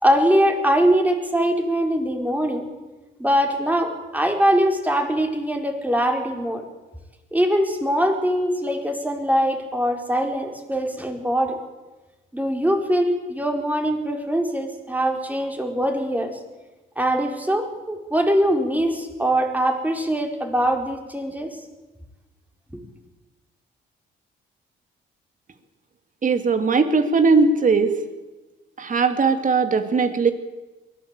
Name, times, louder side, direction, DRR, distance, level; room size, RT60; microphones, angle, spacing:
voice 1, 0.0-2.7 3.2-6.6 7.3-11.6 12.3-16.3 17.0-21.5, equal, 10° right, 3 dB, 4.5 m, -22 dB
voice 2, 26.2-27.9 28.8-30.3, right 4 dB, 40° right, 8 dB, 2.8 m, -19 dB
23.5 x 17.5 x 8.3 m, 1.2 s
cardioid pair, 90°, 20 cm